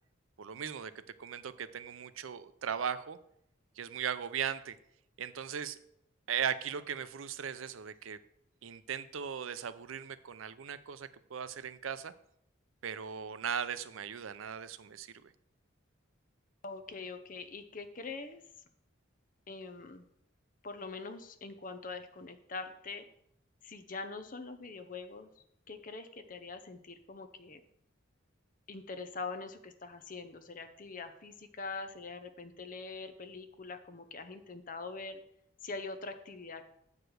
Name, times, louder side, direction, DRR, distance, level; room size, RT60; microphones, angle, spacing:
voice 1, 0.4-0.9 1.2-3.2 3.8-4.8 5.2-5.8 6.3-8.2 8.6-12.1 12.8-15.3, right 8 dB, 85° right, 14 dB, 0.5 m, -38 dB
voice 2, 16.6-18.4 19.5-20.0 20.6-23.0 23.6-27.6 28.7-35.2 35.6-36.6, left 3 dB, 40° left, 8 dB, 0.7 m, -43 dB
7.7 x 4.9 x 6.3 m, 0.73 s
head